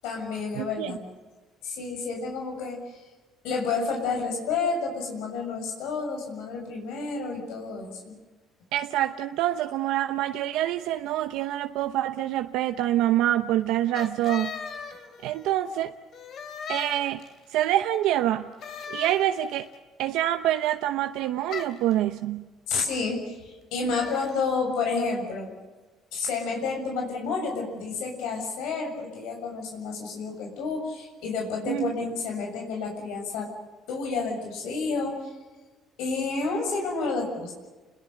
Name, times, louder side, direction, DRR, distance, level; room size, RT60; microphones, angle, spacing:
voice 1, 0.0-1.0 1.6-3.1 3.4-8.1 22.7-25.5 26.1-33.5 33.9-35.3 36.0-37.5, left 4 dB, 90° left, 1 dB, 7.0 m, -30 dB
voice 2, 0.5-0.9 8.7-14.5 15.2-15.9 16.7-17.2 17.5-18.5 18.9-19.7 20.0-22.5 31.7-31.9, right 13 dB, 85° right, 7 dB, 0.9 m, -26 dB
sound 1, 13.9-15.6 16.1-17.5 18.6-19.6 21.5-21.9 23.9-24.4, left 6 dB, 55° left, 3.0 m, -38 dB
29.5 x 21.5 x 6.6 m, 1.2 s
cardioid pair, 120°, 0 cm